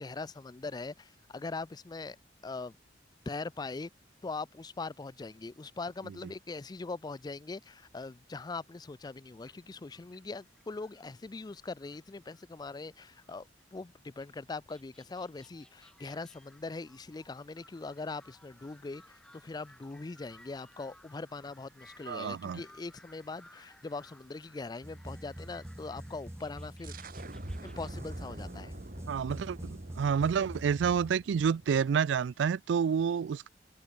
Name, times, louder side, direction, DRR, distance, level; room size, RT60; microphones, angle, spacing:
voice 1, 0.0-2.2 2.4-2.8 3.3-3.9 4.2-27.0 27.6-28.8, left 3 dB, 20° left, 0.4 m, -41 dB
sound 1, 9.1-13.7 14.2-27.9, left 1 dB, 5° left, 4.0 m, -61 dB
voice 2, 22.1-22.6 29.1-33.5, right 7 dB, 75° right, 0.3 m, -29 dB
sound 2, 24.8-31.1, equal, 15° right, 1.0 m, -44 dB
sound 3, 26.8-32.3, right 1 dB, 50° right, 1.9 m, -46 dB
open air
head